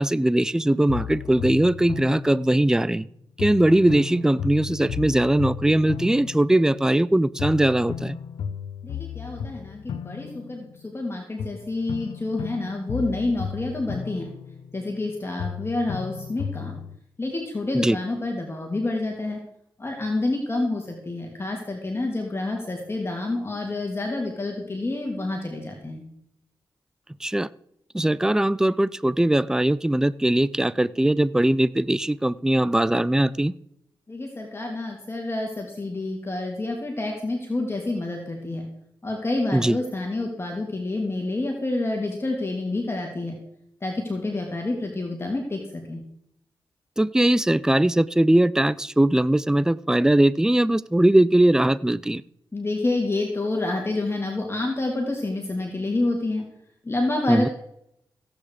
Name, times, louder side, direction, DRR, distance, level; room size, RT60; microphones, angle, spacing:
voice 1, 0.0-3.1 3.4-8.2 17.8-18.0 27.2-27.5 27.9-33.5 39.5-39.8 47.0-52.2 57.3-57.5, right 1 dB, 5° right, 20 dB, 0.5 m, -20 dB
sound 1, 0.9-3.0 3.4-7.1 7.4-11.0 11.4-15.1 15.4-17.0, left 7 dB, 90° left, 0.6 m, -35 dB
voice 2, 8.8-14.3 14.7-16.8 17.2-19.4 19.8-26.0 34.1-38.7 39.0-43.4 43.8-46.0 52.5-56.4 56.8-57.5, left 2 dB, 30° left, 1 dB, 3.0 m, -28 dB
16.0 x 8.8 x 4.9 m, 0.74 s
cardioid pair, 45°, 8 cm